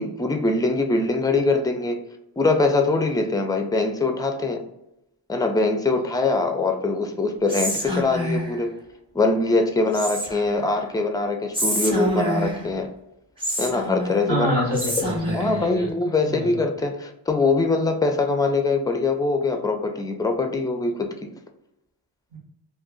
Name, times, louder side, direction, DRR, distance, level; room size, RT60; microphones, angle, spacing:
voice 1, 0.0-2.0 2.4-4.7 5.3-8.8 9.1-12.9 13.6-14.7 15.3-21.3, left 3 dB, 10° left, 5 dB, 0.3 m, -23 dB
Whispering, 7.5-8.6 9.9-10.6 11.5-12.7 13.4-14.3 14.7-15.6, equal, 10° right, 0.7 m, -27 dB
voice 2, 14.3-15.9 16.2-16.5 22.3-22.4, equal, 85° right, -2 dB, 1.2 m, -27 dB
2.5 x 2.4 x 3.6 m, 0.86 s
cardioid pair, 50°, 45 cm